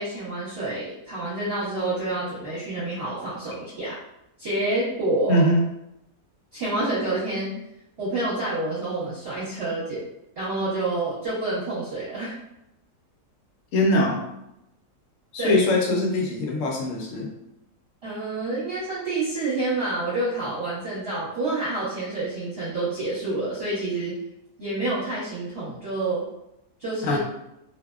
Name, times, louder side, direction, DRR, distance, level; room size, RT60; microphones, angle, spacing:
voice 1, 0.0-4.0 4.4-5.5 6.5-7.5 8.0-10.0 10.3-12.4 15.4-15.6 18.0-24.2 24.6-26.2 26.8-27.2, right 2 dB, 45° right, -12 dB, 1.1 m, -28 dB
voice 2, 5.3-5.6 13.7-14.2 15.3-17.3 27.0-27.2, left 1 dB, 70° left, -1 dB, 0.8 m, -22 dB
2.6 x 2.0 x 2.2 m, 0.86 s
omnidirectional pair, 1.7 m